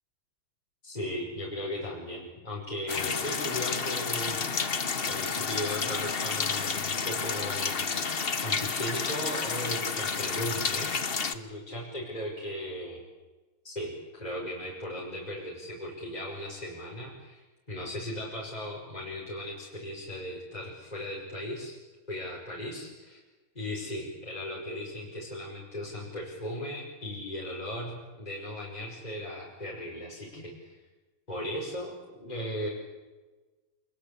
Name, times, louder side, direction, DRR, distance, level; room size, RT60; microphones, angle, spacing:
voice 1, 0.8-4.4 5.1-7.9 8.4-13.0 13.6-21.8 22.1-23.2 23.6-30.7 31.3-32.7, left 1 dB, 20° left, -3 dB, 5.4 m, -37 dB
sound 1, 2.9-11.3, left 5 dB, 35° left, 1.1 m, -30 dB
27.5 x 21.0 x 8.5 m, 1.2 s
omnidirectional pair, 2.2 m